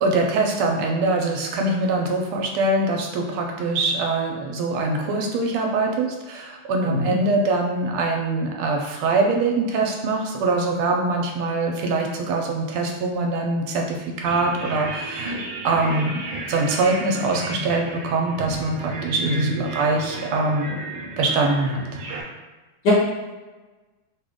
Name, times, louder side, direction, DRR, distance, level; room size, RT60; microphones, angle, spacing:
voice 1, 0.0-15.4 15.6-16.2 16.5-20.8 21.2-21.8, right 2 dB, 90° right, 1 dB, 1.5 m, -23 dB
voice 2, 6.8-7.1 19.2-19.4 22.8-22.9, left 2 dB, 60° left, -6 dB, 1.5 m, -23 dB
sound 1, 14.3-22.2, right 2 dB, 70° right, 1.2 m, -33 dB
3.8 x 2.2 x 3.5 m, 1.2 s
omnidirectional pair, 2.3 m